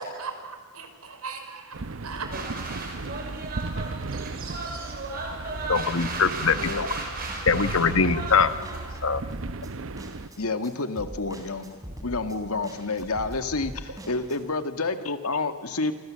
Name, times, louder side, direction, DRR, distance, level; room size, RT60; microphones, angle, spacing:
voice 1, 0.0-1.8 2.0-2.3, right 4 dB, 90° right, 6 dB, 4.7 m, -37 dB
sound 1, 1.7-10.3, right 3 dB, 65° right, 0.8 m, -35 dB
sound 2, 2.3-8.8, right 3 dB, 40° right, 5.6 m, -36 dB
sound 3, 5.6-14.4, equal, 15° right, 3.7 m, -43 dB
voice 2, 5.7-6.7 7.5-8.5 9.0-9.2, left 5 dB, 65° left, 12 dB, 1.2 m, -22 dB
voice 3, 6.5-6.9 10.4-15.9, left 3 dB, 85° left, 9 dB, 1.9 m, -29 dB
27.0 x 26.0 x 7.5 m, 1.5 s
head